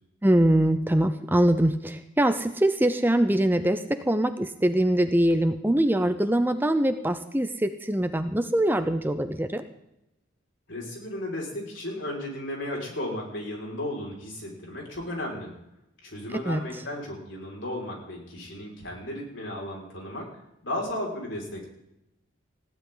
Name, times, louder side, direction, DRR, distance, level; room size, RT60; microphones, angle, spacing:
voice 1, 0.2-9.6 16.4-16.6, right 1 dB, 10° right, 9 dB, 0.7 m, -23 dB
voice 2, 10.7-15.6 16.0-20.3 20.6-21.6, left 1 dB, 65° left, -1 dB, 5.5 m, -34 dB
21.0 x 15.5 x 4.0 m, 0.87 s
head